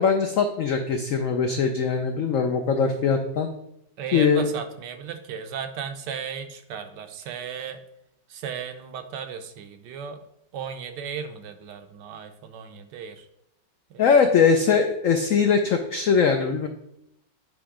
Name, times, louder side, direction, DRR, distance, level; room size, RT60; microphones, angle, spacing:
voice 1, 0.0-3.5 4.1-4.4 14.0-16.7, left 5 dB, 85° left, 5 dB, 0.7 m, -21 dB
voice 2, 4.0-7.8 8.3-10.2 10.5-13.3 13.9-14.0 14.5-14.8, right 7 dB, 75° right, 8 dB, 1.2 m, -35 dB
8.6 x 3.1 x 4.9 m, 0.80 s
omnidirectional pair, 2.0 m